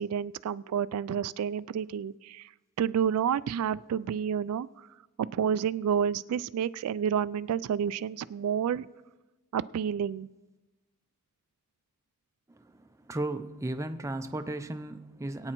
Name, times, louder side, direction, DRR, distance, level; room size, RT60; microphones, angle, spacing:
voice 1, 0.0-2.5 2.8-4.9 5.2-8.9 9.5-10.3, right 8 dB, 80° right, 16 dB, 0.3 m, -30 dB
voice 2, 13.1-15.5, right 2 dB, 15° right, 8 dB, 0.4 m, -35 dB
22.0 x 8.8 x 3.0 m, 1.1 s
head